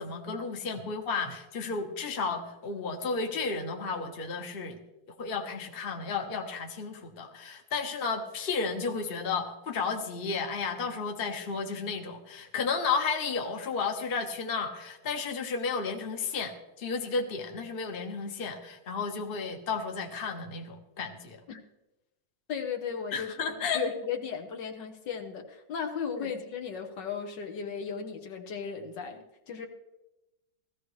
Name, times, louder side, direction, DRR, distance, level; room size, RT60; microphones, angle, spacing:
voice 1, 0.0-4.8 5.2-21.4 23.1-23.8 26.1-26.3, left 4 dB, 35° left, 3 dB, 1.2 m, -33 dB
voice 2, 22.5-29.7, left 7 dB, 70° left, 5 dB, 1.7 m, -36 dB
17.5 x 14.0 x 3.2 m, 0.99 s
omnidirectional pair, 2.0 m